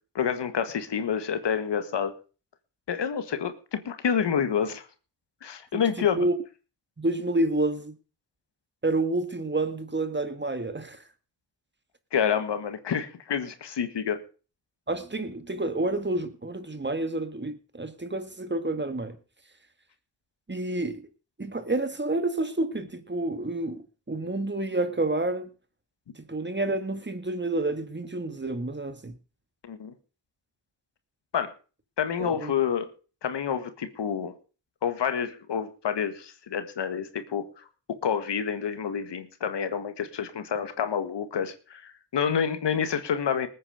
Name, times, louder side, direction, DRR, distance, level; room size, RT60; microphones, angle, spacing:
voice 1, 0.2-2.1 2.9-4.9 5.4-6.3 12.1-14.2 29.6-29.9 31.3-31.5 32.0-32.9 33.2-34.3 34.8-37.6 38.0-43.5, left 7 dB, 85° left, 1.8 m, -28 dB
voice 2, 5.7-6.3 7.0-8.0 8.8-11.0 14.9-19.2 20.5-21.1 21.4-25.5 26.2-29.1 32.2-32.5, right 2 dB, 25° right, 1.9 m, -29 dB
19.5 x 8.8 x 5.0 m
cardioid pair, 50°, 41 cm